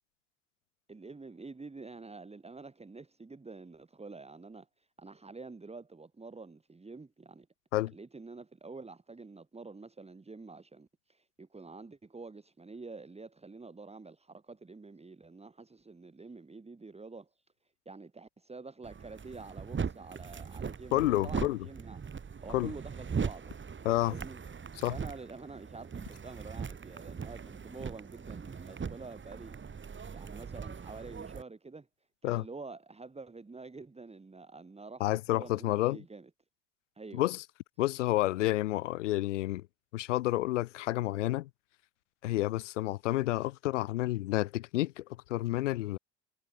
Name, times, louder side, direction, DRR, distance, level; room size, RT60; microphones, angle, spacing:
voice 1, 0.9-7.5 7.9-17.3 17.9-22.1 22.4-23.5 24.0-24.4 24.9-29.6 30.1-31.9 32.2-36.3 37.0-37.3, right 3 dB, 15° right, 2.2 m, -48 dB
sound 1, 18.8-31.4, right 6 dB, 30° right, 3.9 m, -40 dB
voice 2, 20.9-21.6 22.5-22.7 23.8-24.1 24.8-24.9 32.2-32.4 35.0-36.0 37.1-37.4 37.8-39.7 39.9-41.5 42.2-46.0, left 16 dB, 80° left, 0.9 m, -30 dB
hypercardioid pair, 60°, 36 cm